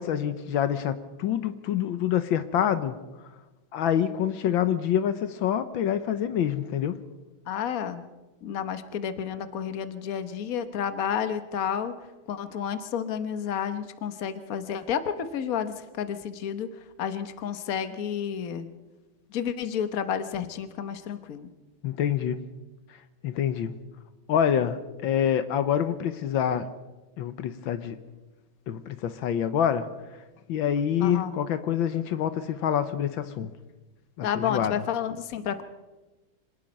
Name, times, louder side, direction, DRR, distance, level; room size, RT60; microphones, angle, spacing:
voice 1, 0.0-3.0 3.7-7.0 21.8-22.4 23.2-23.7 24.3-26.7 27.2-28.0 28.7-29.9 30.5-33.5 34.2-34.8, left 9 dB, 75° left, 12 dB, 1.6 m, -26 dB
voice 2, 7.5-8.0 8.4-12.0 12.3-18.7 19.3-21.5 31.0-31.4 34.2-35.6, left 8 dB, 50° left, 10 dB, 1.5 m, -31 dB
25.5 x 19.0 x 5.4 m, 1.1 s
omnidirectional pair, 2.2 m